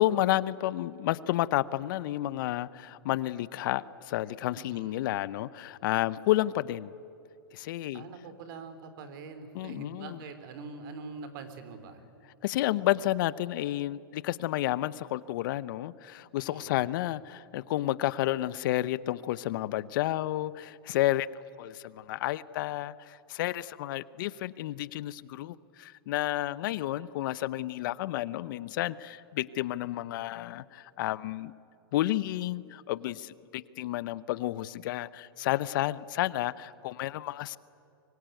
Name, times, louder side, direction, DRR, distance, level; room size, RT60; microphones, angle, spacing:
voice 1, 0.0-6.9 7.5-8.0 9.5-10.2 12.4-21.3 21.6-31.5 31.9-37.6, left 15 dB, 60° left, 18 dB, 0.8 m, -31 dB
voice 2, 4.6-5.0 7.9-12.0 16.5-16.9, right 4 dB, 60° right, 9 dB, 3.6 m, -44 dB
24.0 x 24.0 x 9.2 m, 2.5 s
hypercardioid pair, 125°, 13 cm